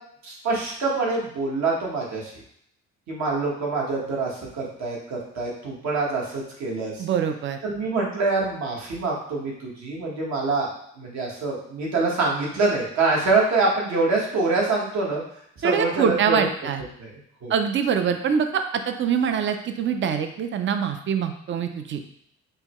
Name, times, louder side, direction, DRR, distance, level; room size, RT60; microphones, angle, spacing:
voice 1, 0.2-2.3 3.1-7.0 7.6-10.7 11.0-15.2 15.6-16.4 17.0-17.1 17.4-17.5, right 3 dB, 65° right, -3 dB, 1.4 m, -25 dB
voice 2, 7.0-7.6 15.6-16.8 17.5-22.0, right 7 dB, 40° right, 7 dB, 0.5 m, -24 dB
5.5 x 2.2 x 3.0 m, 0.71 s
cardioid pair, 90°, 30 cm